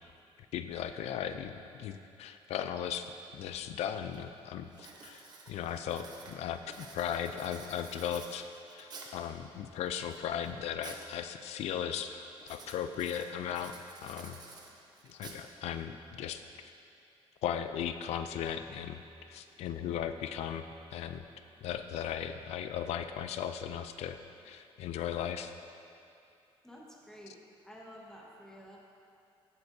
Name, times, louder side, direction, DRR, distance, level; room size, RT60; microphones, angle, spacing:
voice 1, 0.5-8.4 8.7-13.7 14.0-14.4 15.0-16.7 17.4-19.0 19.3-20.7 20.9-21.2 21.6-24.2 24.4-25.5, left 9 dB, 90° left, 9 dB, 0.4 m, -37 dB
Writing, 4.1-4.4 4.7-9.3 9.9-11.1 11.4-11.8 12.4-15.8, right 4 dB, 40° right, 1.0 m, -51 dB
voice 2, 26.6-28.8, equal, 5° left, -3 dB, 1.4 m, -51 dB
15.5 x 8.0 x 2.7 m, 2.6 s
cardioid pair, 155°, 11 cm